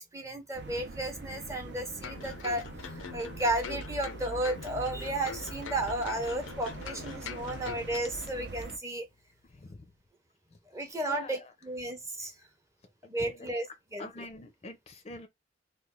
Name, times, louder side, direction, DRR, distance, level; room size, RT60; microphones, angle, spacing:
voice 1, 0.0-9.1 10.7-12.4 13.1-13.7 13.9-14.2, right 1 dB, 15° right, 0.6 m, -33 dB
sound 1, 0.5-8.8, right 3 dB, 60° right, 0.6 m, -44 dB
voice 2, 1.2-2.3 9.5-9.9 10.5-10.6 11.1-11.5 13.2-13.5 14.0-15.3, left 2 dB, 35° left, 0.5 m, -46 dB
sound 2, 2.0-8.3 8.6-8.7, left 5 dB, 90° left, 0.5 m, -43 dB
3.1 x 2.3 x 3.6 m
head